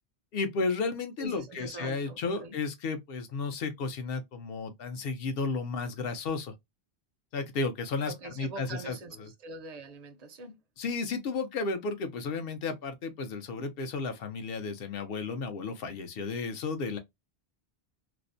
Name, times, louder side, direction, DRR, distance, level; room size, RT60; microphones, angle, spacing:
voice 1, 0.3-6.5 7.3-9.3 10.8-17.0, left 4 dB, 70° left, 0.8 m, -33 dB
voice 2, 1.2-2.6 8.0-10.6, right 2 dB, 50° right, 0.5 m, -43 dB
2.5 x 2.0 x 2.5 m
omnidirectional pair, 1.0 m